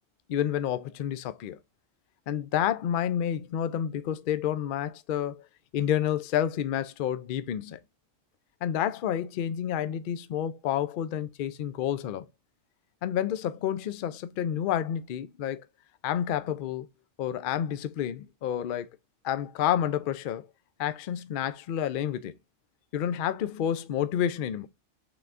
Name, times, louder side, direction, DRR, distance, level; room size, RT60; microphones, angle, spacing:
voice 1, 0.3-1.6 2.3-5.4 5.7-7.8 8.6-12.3 13.0-15.7 16.0-16.9 17.2-18.9 19.2-20.5 20.8-22.3 22.9-24.7, left 10 dB, 65° left, 0.5 m, -29 dB
6.0 x 3.4 x 2.4 m
omnidirectional pair, 1.3 m